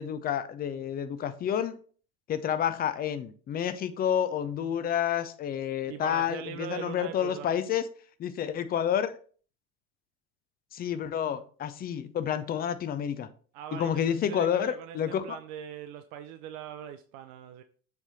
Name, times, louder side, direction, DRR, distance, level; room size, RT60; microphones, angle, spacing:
voice 1, 0.0-1.8 2.3-7.9 8.2-9.1 10.7-13.3 13.7-15.4, left 9 dB, 20° left, 0.5 m, -29 dB
voice 2, 5.8-7.5 13.5-17.6, right 10 dB, 45° right, 0.6 m, -41 dB
7.1 x 3.5 x 4.1 m
figure-of-eight pair, 80°, 45 cm